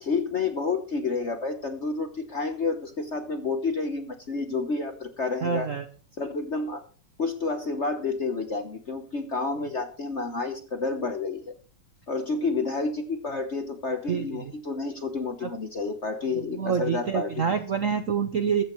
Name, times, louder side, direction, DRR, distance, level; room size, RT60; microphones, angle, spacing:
voice 1, 0.0-5.7 6.2-6.8 7.2-11.5 12.1-17.5, left 4 dB, 45° left, 7 dB, 0.9 m, -30 dB
voice 2, 5.4-5.9 14.1-14.5 15.4-15.5 16.3-18.6, right 7 dB, 60° right, 8 dB, 0.8 m, -27 dB
14.0 x 14.0 x 3.1 m, 0.39 s
omnidirectional pair, 2.4 m